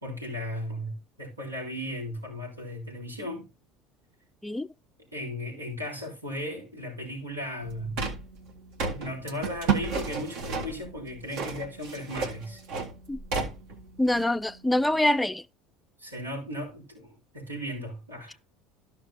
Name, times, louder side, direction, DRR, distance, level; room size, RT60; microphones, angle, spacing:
voice 1, 0.0-3.5 5.1-8.0 8.9-12.6 16.0-18.4, left 1 dB, 90° right, 4.2 m, -36 dB
sound 1, 7.6-15.1, right 5 dB, 55° right, 1.8 m, -33 dB
voice 2, 14.0-15.4, left 1 dB, 5° left, 0.4 m, -25 dB
13.5 x 5.7 x 2.8 m
figure-of-eight pair, 65°, 0 cm